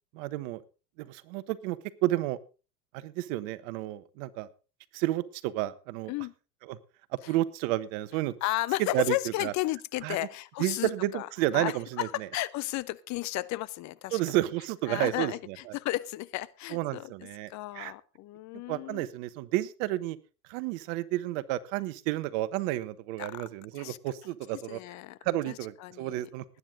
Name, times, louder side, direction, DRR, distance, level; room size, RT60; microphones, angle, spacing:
voice 1, 0.1-0.6 1.0-2.4 2.9-4.5 4.9-6.1 6.7-6.8 7.3-8.3 8.9-9.1 9.4-9.5 10.0-10.3 10.6-12.3 14.1-15.7 16.7-17.9 18.7-20.2 20.5-24.8 25.2-26.4, right 15 dB, 55° right, 15 dB, 1.3 m, -31 dB
voice 2, 8.4-11.3 11.5-14.2 14.9-17.1 17.5-19.0 23.2-23.4 23.8-24.0 24.7-25.2 25.5-25.6 25.8-26.2, left 17 dB, 35° left, 18 dB, 0.7 m, -33 dB
19.0 x 9.7 x 3.8 m, 0.33 s
hypercardioid pair, 95°, 47 cm